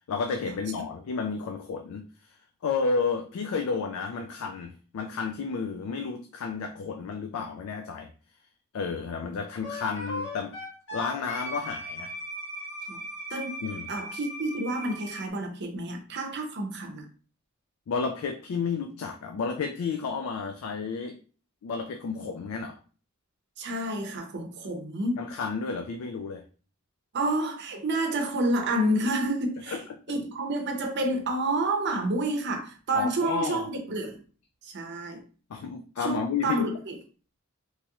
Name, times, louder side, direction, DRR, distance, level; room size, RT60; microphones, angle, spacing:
voice 1, 0.1-2.3 2.6-8.1 8.7-10.5 10.9-12.1 13.6-13.9 17.9-21.2 21.6-22.8 25.2-26.4 29.7-29.8 32.9-33.7 35.5-36.7, left 5 dB, 80° left, 0.4 m, -31 dB
Wind instrument woodwind instrument, 9.6-15.3, equal, 60° left, 1.3 m, -38 dB
voice 2, 13.9-17.1 23.6-25.3 27.1-29.8 30.1-34.2 34.6-35.2 36.0-36.9, right 1 dB, 55° right, 0.6 m, -29 dB
3.1 x 2.9 x 2.3 m
head